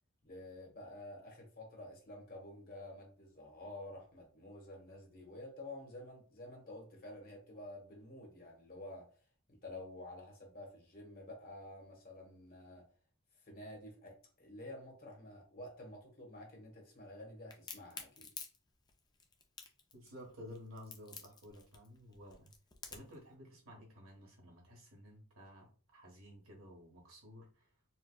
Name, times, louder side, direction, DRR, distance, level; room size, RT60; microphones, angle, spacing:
voice 1, 0.2-9.1 9.5-12.8 13.4-18.3, left 1 dB, 45° left, 1.2 m, -50 dB
Crack, 17.5-23.2, left 5 dB, 20° left, 0.4 m, -49 dB
voice 2, 19.9-22.5 22.9-27.9, left 1 dB, 70° right, 1.4 m, -54 dB
4.3 x 2.2 x 2.3 m
head